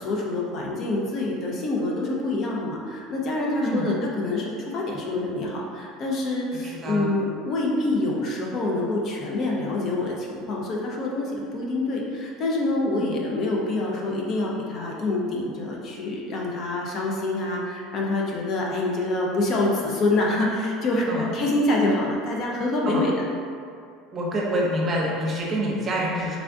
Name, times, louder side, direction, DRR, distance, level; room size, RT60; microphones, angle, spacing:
voice 1, 0.0-23.2, left 2 dB, 50° left, -2 dB, 0.7 m, -26 dB
voice 2, 6.6-7.1 13.0-13.1 21.1-21.3 22.8-23.0 24.1-26.4, equal, 35° right, -3 dB, 0.8 m, -27 dB
3.6 x 2.4 x 3.5 m, 2.3 s
hypercardioid pair, 85°, 0 cm